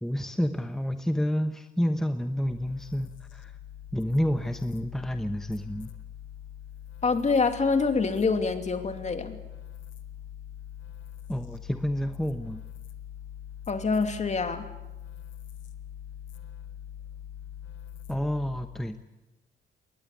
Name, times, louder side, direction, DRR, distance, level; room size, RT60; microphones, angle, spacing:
voice 1, 0.0-3.5 3.9-5.9 11.3-12.6 18.1-19.0, equal, ahead, 7 dB, 1.1 m, -29 dB
sound 1, 2.4-19.0, left 10 dB, 75° left, 1.7 m, -43 dB
voice 2, 7.0-9.4 13.7-14.7, left 4 dB, 35° left, 7 dB, 2.6 m, -26 dB
22.0 x 19.0 x 8.5 m, 1.0 s
cardioid pair, 90°, 20 cm